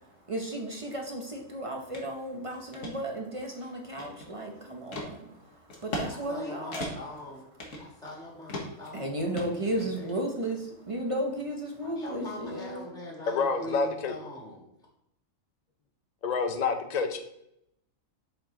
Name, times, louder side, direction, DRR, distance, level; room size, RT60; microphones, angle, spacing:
voice 1, 0.3-5.5 5.8-6.9 8.9-12.9, right 1 dB, 35° right, 1 dB, 0.6 m, -34 dB
sound 1, 1.9-2.1 2.5-2.9 3.5-4.4 4.9-5.1 5.7-6.1 6.3-6.4 6.7-7.2 7.6-8.2 8.5-8.9 9.4-10.2, left 1 dB, 65° left, 1.5 m, -37 dB
voice 2, 6.1-7.5 7.8-10.2 11.8-14.7, left 1 dB, 5° left, -3 dB, 1.5 m, -43 dB
voice 3, 13.3-14.1 16.2-17.2, left 4 dB, 45° left, 7 dB, 0.5 m, -28 dB
6.6 x 4.2 x 3.8 m, 0.78 s
omnidirectional pair, 1.4 m